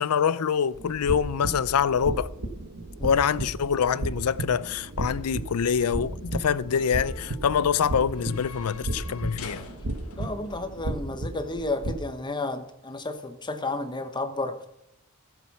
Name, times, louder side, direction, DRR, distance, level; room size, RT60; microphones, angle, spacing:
voice 1, 0.0-2.3 3.0-9.6, left 7 dB, 85° left, 0.5 m, -25 dB
sound 1, 0.7-12.0, right 1 dB, 80° right, 1.3 m, -34 dB
sound 2, 5.0-12.0, left 4 dB, 65° left, 1.4 m, -48 dB
voice 2, 10.2-14.7, left 2 dB, 20° left, 1.0 m, -32 dB
14.0 x 7.3 x 5.7 m
head